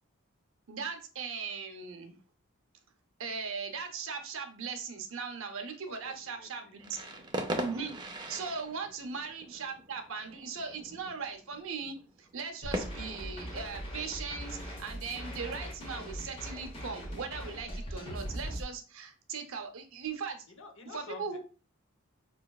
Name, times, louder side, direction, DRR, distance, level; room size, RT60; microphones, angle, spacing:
voice 1, 0.7-2.2 3.2-7.0 7.5-8.0 8.3-20.4 20.9-21.4, right 5 dB, 65° right, 6 dB, 0.7 m, -39 dB
voice 2, 5.9-7.3 20.5-21.4, left 2 dB, 60° left, 3 dB, 0.9 m, -50 dB
sound 1, 6.8-14.4, right 1 dB, 20° right, 0.5 m, -41 dB
sound 2, 12.6-18.6, equal, 25° left, 1.0 m, -40 dB
4.9 x 2.9 x 2.3 m, 0.35 s
head